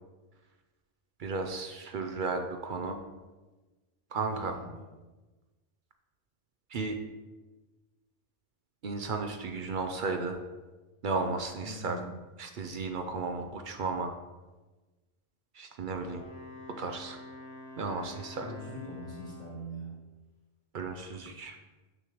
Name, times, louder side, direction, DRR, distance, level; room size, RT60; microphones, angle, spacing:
voice 1, 1.2-3.0 4.1-4.6 6.7-7.0 8.8-10.4 11.0-12.0 12.4-14.2 15.5-16.2 16.8-17.2 17.8-18.5 20.7-21.6, right 4 dB, 60° right, 5 dB, 0.6 m, -34 dB
voice 2, 4.3-4.8 11.6-12.1 18.4-20.0, right 1 dB, 40° right, -5 dB, 1.6 m, -42 dB
Wind instrument woodwind instrument, 16.0-19.8, left 2 dB, 30° left, 1.4 m, -47 dB
6.4 x 6.3 x 3.0 m, 1.2 s
omnidirectional pair, 1.1 m